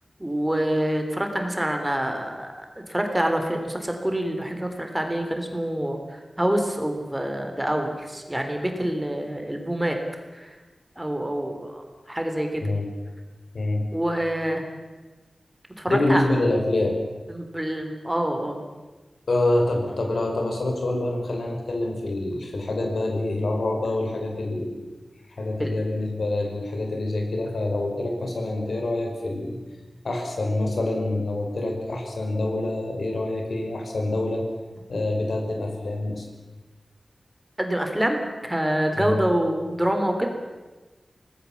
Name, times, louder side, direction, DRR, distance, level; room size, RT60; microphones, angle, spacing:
voice 1, 0.2-10.0 10.3-10.6 11.0-12.7 13.9-14.7 15.8-16.2 17.3-18.6 25.6-25.7 37.6-40.3, right 1 dB, 10° right, 4 dB, 3.6 m, -26 dB
voice 2, 13.5-13.9 15.9-16.9 19.3-24.9 25.4-29.6 30.0-34.4 34.9-36.3 38.9-39.2, left 2 dB, 75° left, 2 dB, 5.2 m, -26 dB
25.0 x 19.0 x 7.3 m, 1.2 s
wide cardioid pair, 95°, 0 cm